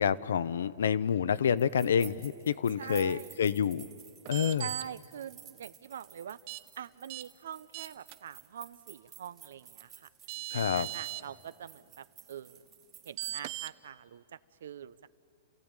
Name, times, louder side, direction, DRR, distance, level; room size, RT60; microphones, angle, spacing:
voice 1, 0.0-3.9 4.3-4.7 10.5-10.9, left 7 dB, 85° left, 16 dB, 0.7 m, -28 dB
sound 1, 1.6-13.7, right 9 dB, 25° right, 1.9 m, -54 dB
voice 2, 2.8-3.3 4.6-6.4 6.8-10.1 10.5-12.6 13.0-14.2 14.6-15.1, right 9 dB, 80° right, 17 dB, 0.7 m, -44 dB
sound 2, 4.3-4.8 6.5-6.6 7.1-7.2 7.7-8.2 9.8-9.9 10.3-11.2 13.2-13.7, right 15 dB, 40° right, 0.6 m, -38 dB
29.0 x 15.0 x 8.9 m, 2.5 s
hypercardioid pair, 160°, 0 cm